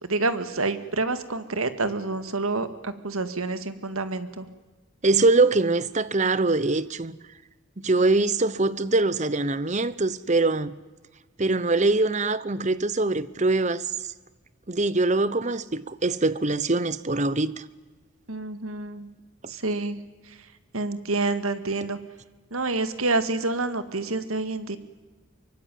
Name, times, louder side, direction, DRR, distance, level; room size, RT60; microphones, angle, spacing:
voice 1, 0.0-4.5 18.3-19.1 19.5-20.0 20.7-22.0 22.5-24.8, right 3 dB, 85° right, 2.0 m, -28 dB
voice 2, 5.0-7.2 7.8-10.8 11.4-13.9 14.7-17.6, right 2 dB, 35° right, 0.9 m, -23 dB
24.5 x 23.5 x 9.3 m
head